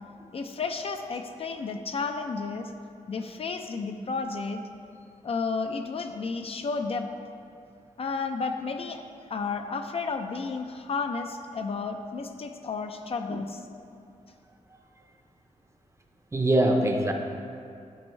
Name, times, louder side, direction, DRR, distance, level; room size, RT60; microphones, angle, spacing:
voice 1, 0.3-2.7 3.1-4.6 5.2-7.1 8.0-9.0 9.3-13.6, left 4 dB, 50° left, 6 dB, 0.4 m, -32 dB
voice 2, 16.3-17.1, right 1 dB, 20° right, 3 dB, 0.6 m, -23 dB
7.8 x 4.3 x 3.1 m, 2.5 s
cardioid pair, 80°, 13 cm